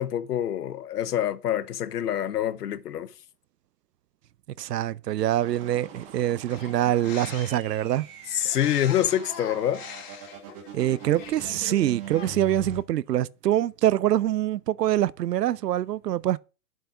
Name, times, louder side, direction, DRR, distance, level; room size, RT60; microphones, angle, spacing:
voice 1, 0.0-3.1 8.3-9.8, left 11 dB, 75° left, 1.0 m, -26 dB
voice 2, 4.6-8.1 10.7-16.4, right 12 dB, 85° right, 0.6 m, -25 dB
sound 1, 5.4-12.8, right 6 dB, 25° right, 1.6 m, -42 dB
sound 2, 6.5-7.7 8.4-11.8 12.0-12.6, left 8 dB, 55° left, 3.0 m, -42 dB
7.6 x 5.8 x 5.3 m
hypercardioid pair, 150°, 48 cm